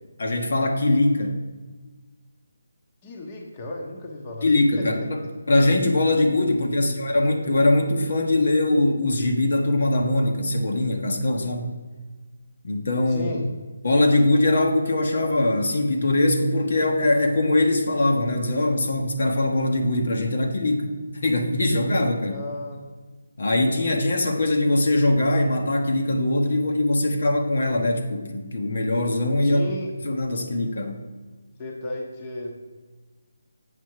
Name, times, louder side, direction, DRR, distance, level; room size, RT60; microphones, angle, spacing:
voice 1, 0.2-1.4 4.4-5.2 5.5-11.7 12.6-13.3 13.8-22.4 23.4-29.7 30.0-31.0, left 2 dB, 65° left, 3 dB, 1.3 m, -22 dB
voice 2, 3.0-4.5 4.8-5.1 6.6-7.0 13.1-13.5 22.3-22.9 29.4-29.9 31.6-32.6, left 2 dB, 25° left, 0 dB, 1.1 m, -34 dB
8.1 x 6.3 x 4.7 m, 1.3 s
figure-of-eight pair, 160°, 0 cm